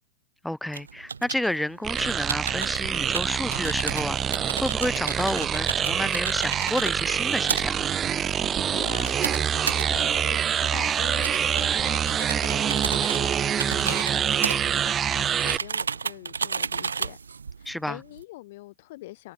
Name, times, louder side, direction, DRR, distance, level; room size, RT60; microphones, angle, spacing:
voice 1, 0.4-7.9 13.7-14.0 17.6-18.0, left 1 dB, 5° left, 3.4 m, -30 dB
sound 1, 0.7-18.2, right 5 dB, 85° right, 2.1 m, -34 dB
sound 2, 1.8-15.6, right 8 dB, 25° right, 0.4 m, -26 dB
voice 2, 8.7-17.2 17.6-19.3, left 19 dB, 55° left, 4.9 m, -43 dB
hypercardioid pair, 105°, 0 cm